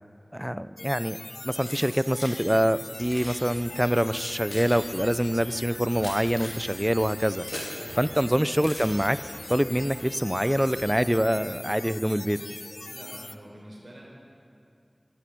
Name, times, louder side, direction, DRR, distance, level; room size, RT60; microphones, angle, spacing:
voice 1, 0.3-1.2 1.4-7.4 8.0-9.2 9.5-12.4, equal, 10° right, 14 dB, 0.5 m, -25 dB
sound 1, 0.8-13.4, left 2 dB, 50° left, 0.6 m, -41 dB
Keys jangling, 1.5-2.4 2.9-3.4 4.1-7.8 8.6-9.5, left 1 dB, 70° left, 3.1 m, -41 dB
sound 2, 3.0-11.0, equal, 55° right, 5.0 m, -48 dB
voice 2, 7.8-8.2 12.8-14.0, right 1 dB, 75° right, -3 dB, 4.2 m, -46 dB
14.5 x 11.0 x 8.6 m, 2.5 s
wide cardioid pair, 50°, 0 cm